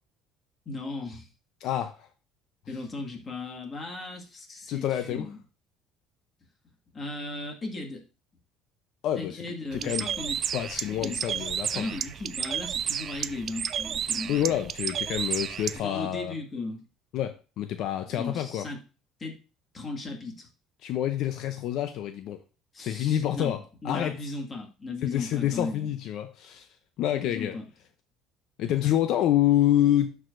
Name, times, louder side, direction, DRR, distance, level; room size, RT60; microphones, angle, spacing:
voice 1, 0.7-1.3 2.7-5.4 6.9-8.0 9.1-10.4 10.7-14.5 15.7-16.8 18.1-18.8 19.2-19.4 19.7-20.5 22.7-25.9 27.1-27.6, left 3 dB, 25° left, 1.8 m, -37 dB
voice 2, 1.6-2.1 4.7-5.3 9.0-9.4 9.7-10.1 10.5-11.9 14.3-16.3 17.1-18.7 20.8-22.4 22.8-24.2 25.0-26.7 27.0-27.6 28.6-30.2, left 12 dB, 60° left, 0.6 m, -27 dB
Bird, 9.7-15.8, right 8 dB, 40° right, 0.3 m, -32 dB
12.0 x 4.8 x 2.5 m
cardioid pair, 135°, 0 cm